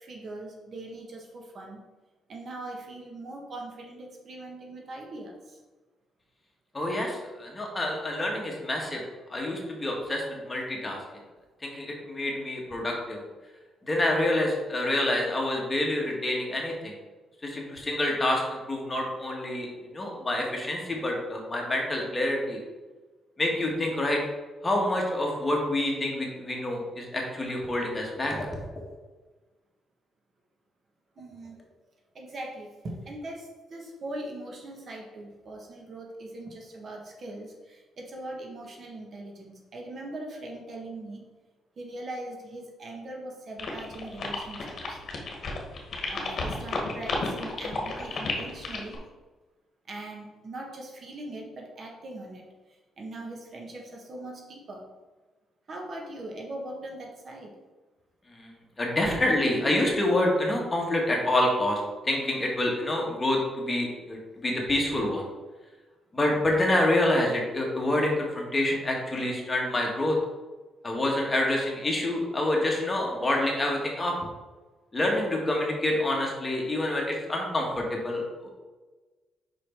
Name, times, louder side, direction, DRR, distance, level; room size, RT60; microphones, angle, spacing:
voice 1, 0.0-1.8 2.3-5.6 31.2-31.6 32.1-41.2 41.8-45.0 46.1-49.0 49.8-54.8 55.7-57.5, right 1 dB, 50° right, 0 dB, 1.4 m, -41 dB
voice 2, 6.7-9.0 9.3-11.0 11.6-13.2 13.8-16.9 17.4-19.7 19.9-22.6 23.4-24.2 24.6-28.5 58.3-58.5 58.8-65.2 66.1-70.2 70.8-74.1 74.9-78.2, left 1 dB, 20° left, -1 dB, 1.7 m, -27 dB
sound 1, 43.6-49.0, left 3 dB, 50° left, 1.4 m, -32 dB
5.3 x 4.8 x 4.5 m, 1.2 s
cardioid pair, 90°, 0 cm